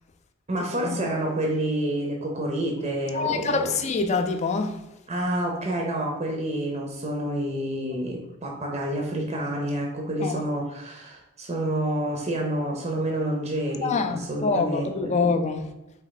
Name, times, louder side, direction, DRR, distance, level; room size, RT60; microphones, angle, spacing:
voice 1, 0.5-3.8 5.1-15.2, right 1 dB, 30° right, 0.6 m, -28 dB
voice 2, 3.1-4.8 10.2-10.4 13.8-15.7, left 4 dB, 30° left, 0.4 m, -25 dB
4.2 x 2.7 x 4.0 m
head